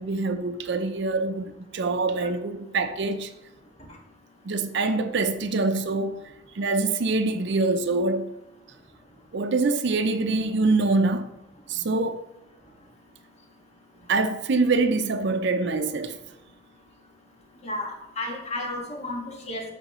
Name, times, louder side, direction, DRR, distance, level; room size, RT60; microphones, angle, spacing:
voice 1, 0.0-3.3 4.4-6.2 6.5-8.2 9.3-11.3 11.7-12.2 14.1-16.2, right 3 dB, 65° right, 0.5 m, -25 dB
voice 2, 17.6-19.7, left 1 dB, 35° left, 1.7 m, -32 dB
13.0 x 4.9 x 3.0 m
head